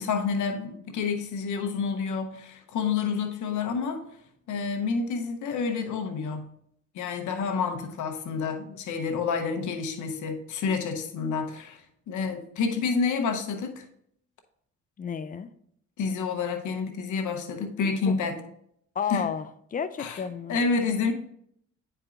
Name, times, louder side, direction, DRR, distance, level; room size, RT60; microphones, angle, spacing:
voice 1, 0.0-4.1 4.5-6.5 6.9-13.8 16.0-18.4 19.1-19.3 20.0-20.2 20.5-21.1, left 5 dB, 75° left, 4 dB, 1.0 m, -29 dB
voice 2, 15.0-15.5 18.1-18.2 19.0-20.6, left 7 dB, 30° left, 12 dB, 0.4 m, -32 dB
10.0 x 4.5 x 2.5 m, 0.71 s
cardioid pair, 90°, 30 cm